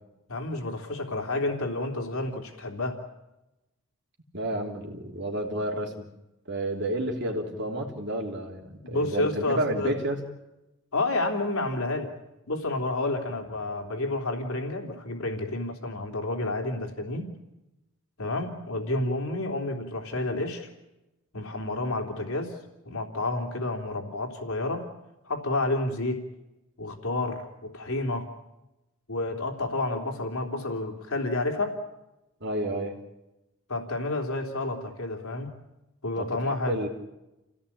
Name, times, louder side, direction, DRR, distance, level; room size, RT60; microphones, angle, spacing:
voice 1, 0.3-3.0 8.8-9.9 10.9-12.1 12.5-17.3 18.2-20.7 21.3-22.6 22.8-24.9 25.3-26.2 26.8-28.3 29.1-31.8 33.7-35.5 36.0-36.8, left 2 dB, 90° left, 3 dB, 3.4 m, -30 dB
voice 2, 4.3-6.0 6.5-10.2 32.4-32.9 36.2-36.9, right 1 dB, 55° right, 1 dB, 3.4 m, -31 dB
29.0 x 17.0 x 8.7 m, 0.98 s
head